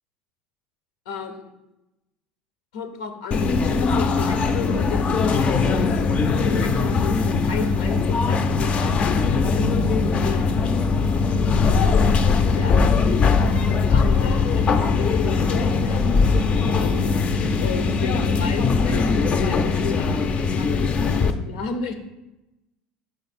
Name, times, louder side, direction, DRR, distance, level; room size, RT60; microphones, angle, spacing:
voice 1, 1.1-1.5 2.7-10.5 11.6-11.9 12.2-16.1 16.6-17.3 17.6-21.9, left 6 dB, 90° left, 7 dB, 0.7 m, -34 dB
sound 1, 3.3-21.3, left 4 dB, 40° left, 0.5 m, -20 dB
4.9 x 4.7 x 4.2 m, 0.94 s
supercardioid pair, 95°, 3 cm